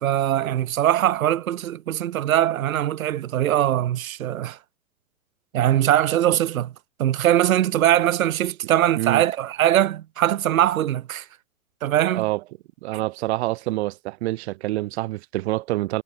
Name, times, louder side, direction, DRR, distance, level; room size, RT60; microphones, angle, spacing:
voice 1, 0.0-4.6 5.5-6.7 7.0-11.2 11.8-12.2 12.9-13.0, right 12 dB, 75° right, 1.0 m, -21 dB
voice 2, 12.8-16.0, right 18 dB, 50° right, 0.9 m, -26 dB
hypercardioid pair, 115°, 42 cm